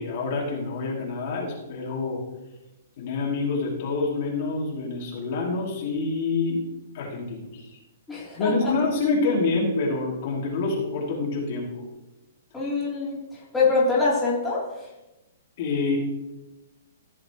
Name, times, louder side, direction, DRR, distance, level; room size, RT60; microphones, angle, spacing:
voice 1, 0.0-2.2 3.0-6.6 6.9-7.8 8.3-11.8 15.6-16.0, left 3 dB, 45° left, -3 dB, 2.6 m, -27 dB
voice 2, 8.1-8.7 12.5-14.7, left 3 dB, 5° left, -9 dB, 3.2 m, -24 dB
15.0 x 6.5 x 3.0 m, 0.99 s
hypercardioid pair, 160°, 0 cm